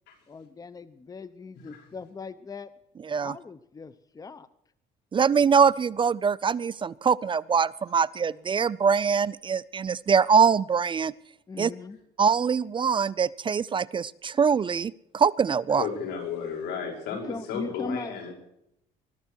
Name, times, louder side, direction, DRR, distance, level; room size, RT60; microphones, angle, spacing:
voice 1, 0.3-2.7 3.2-4.5 11.5-12.0 17.1-18.3, left 4 dB, 20° left, 15 dB, 0.8 m, -39 dB
voice 2, 5.1-11.1 11.6-11.7 12.2-15.9, right 6 dB, 30° right, 19 dB, 0.5 m, -23 dB
voice 3, 15.7-18.3, left 6 dB, 85° left, 2 dB, 5.4 m, -34 dB
21.0 x 13.5 x 4.6 m, 0.77 s
cardioid pair, 110°, 17 cm